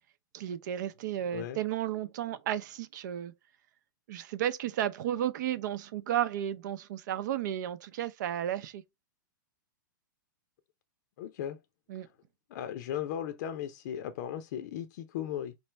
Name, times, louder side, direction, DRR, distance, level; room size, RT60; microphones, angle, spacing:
voice 1, 0.3-3.3 4.1-8.8 11.9-12.1, right 11 dB, 60° right, 0.6 m, -33 dB
voice 2, 1.3-1.6 11.2-11.6 11.9-12.2 12.5-15.5, left 10 dB, 60° left, 0.6 m, -37 dB
4.2 x 3.2 x 3.3 m
hypercardioid pair, 130°, 11 cm